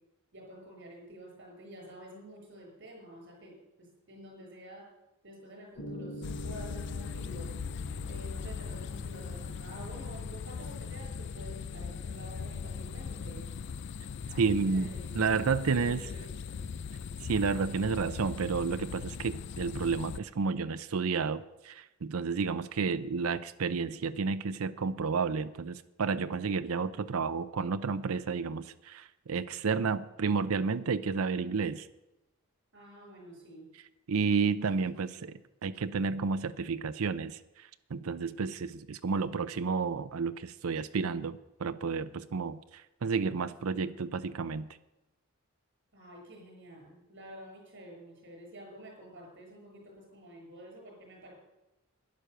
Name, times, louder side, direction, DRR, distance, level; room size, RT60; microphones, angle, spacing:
voice 1, 0.3-4.8 5.2-7.5 8.0-13.5 14.3-16.6 32.7-33.6 35.1-35.2 45.9-51.3, right 1 dB, 60° right, 0 dB, 6.4 m, -49 dB
Piano, 5.8-13.8, equal, 90° left, 3.7 m, -48 dB
sound 1, 6.2-20.2, left 6 dB, 55° left, 0.4 m, -39 dB
voice 2, 14.4-14.9 15.1-16.1 17.2-31.9 34.1-44.7, right 5 dB, 90° right, 11 dB, 0.6 m, -31 dB
11.5 x 10.5 x 6.8 m, 0.96 s
head